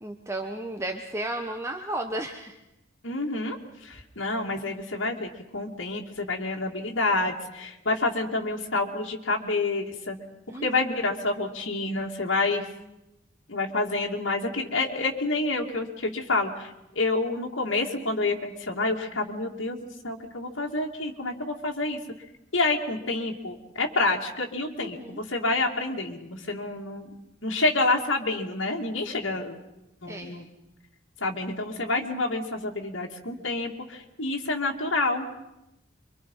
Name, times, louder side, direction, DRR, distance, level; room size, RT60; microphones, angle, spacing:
voice 1, 0.0-2.6 10.5-10.7 24.8-25.2 30.1-30.3, right 1 dB, 15° right, 4 dB, 1.1 m, -33 dB
voice 2, 3.0-10.2 10.5-12.7 13.5-19.8 20.0-22.0 22.5-27.1 27.4-29.6 30.0-30.5 31.2-35.3, left 2 dB, 75° left, 1 dB, 2.6 m, -28 dB
26.5 x 24.0 x 5.6 m, 0.91 s
head